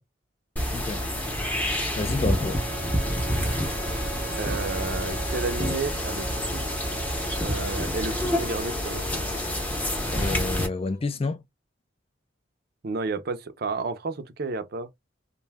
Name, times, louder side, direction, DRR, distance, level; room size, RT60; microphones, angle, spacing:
sound 1, 0.6-10.7, equal, 10° left, 0.7 m, -28 dB
voice 1, 0.7-1.0 2.0-2.6 10.1-11.4, left 3 dB, 30° left, 0.3 m, -29 dB
Female singing, 2.2-11.0, right 3 dB, 50° left, 0.9 m, -42 dB
voice 2, 4.4-6.6 7.4-9.1 12.8-14.9, right 3 dB, 50° right, 0.5 m, -31 dB
2.6 x 2.2 x 3.3 m
head